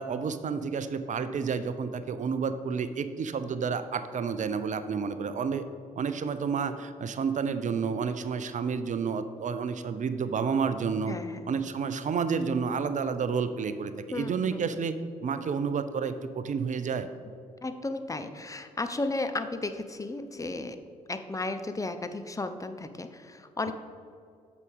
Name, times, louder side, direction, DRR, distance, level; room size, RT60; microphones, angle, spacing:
voice 1, 0.0-5.7 6.0-11.1 11.5-15.0 15.2-17.1, right 6 dB, 45° right, 11 dB, 0.6 m, -30 dB
voice 2, 11.1-11.5 14.1-14.8 17.6-20.8 21.1-23.7, left 2 dB, 20° left, 9 dB, 0.8 m, -34 dB
8.2 x 6.2 x 5.2 m, 2.3 s
figure-of-eight pair, 40°, 18 cm